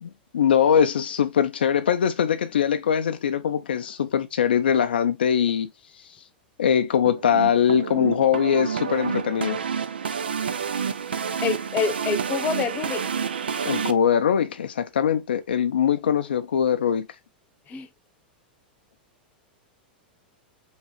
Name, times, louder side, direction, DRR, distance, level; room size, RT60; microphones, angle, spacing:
voice 1, 0.0-5.7 6.6-9.6 13.6-17.1, left 8 dB, 80° left, 0.4 m, -22 dB
sound 1, 7.0-13.9, right 7 dB, 85° right, 0.4 m, -29 dB
voice 2, 11.4-13.0 17.7-17.9, left 5 dB, 30° left, 0.7 m, -27 dB
3.6 x 3.1 x 3.0 m
hypercardioid pair, 105°, 5 cm